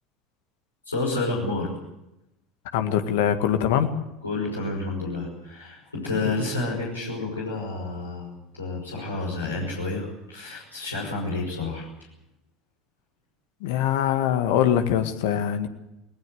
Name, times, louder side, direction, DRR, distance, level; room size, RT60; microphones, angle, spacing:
voice 1, 0.9-1.7 4.2-11.9, left 2 dB, 90° left, -4 dB, 5.7 m, -30 dB
voice 2, 2.7-3.9 13.6-15.7, left 10 dB, 65° left, 8 dB, 1.9 m, -23 dB
19.5 x 19.5 x 7.9 m, 0.90 s
figure-of-eight pair, 70°, 0 cm